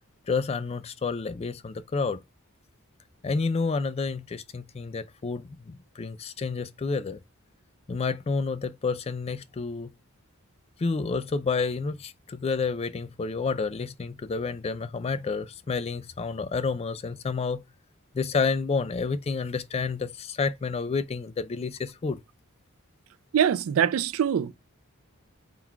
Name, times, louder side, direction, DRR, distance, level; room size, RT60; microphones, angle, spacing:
voice 1, 0.3-2.2 3.2-7.2 7.9-9.9 10.8-17.6 18.1-22.2, left 4 dB, 30° left, 0.3 m, -29 dB
voice 2, 23.3-24.5, right 8 dB, 75° right, 0.4 m, -23 dB
3.7 x 2.4 x 4.4 m
head